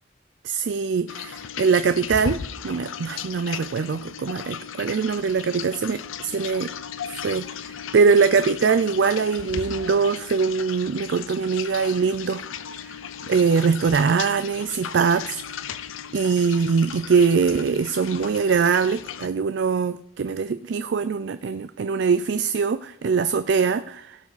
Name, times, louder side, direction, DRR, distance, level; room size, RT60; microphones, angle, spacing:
voice 1, 0.4-2.4 2.6-6.7 7.1-12.4 12.8-13.0 13.3-15.6 16.1-24.2, right 5 dB, 60° right, 13 dB, 0.4 m, -22 dB
sound 1, 1.1-19.3, left 8 dB, 85° left, 0.6 m, -36 dB
17.0 x 7.1 x 4.0 m, 0.75 s
head